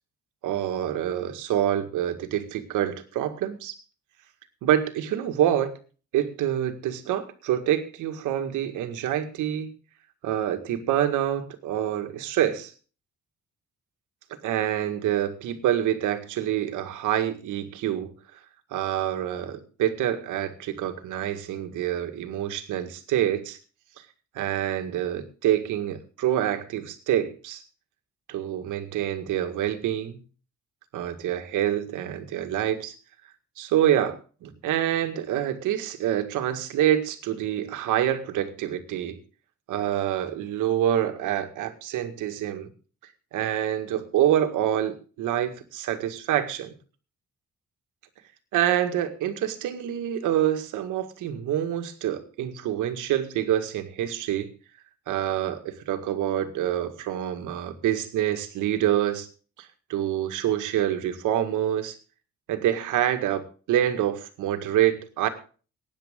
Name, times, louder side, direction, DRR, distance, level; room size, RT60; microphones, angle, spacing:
voice 1, 0.4-3.8 4.6-5.7 6.1-9.7 10.2-12.7 14.3-18.1 18.7-23.6 24.3-27.6 28.3-30.2 30.9-33.0 33.6-39.2 39.7-42.7 43.3-46.7 48.5-54.5 55.1-59.3 59.6-62.0 62.5-65.3, right 11 dB, 90° right, 8 dB, 1.9 m, -26 dB
16.5 x 9.9 x 3.7 m, 0.37 s
cardioid pair, 90°, 30 cm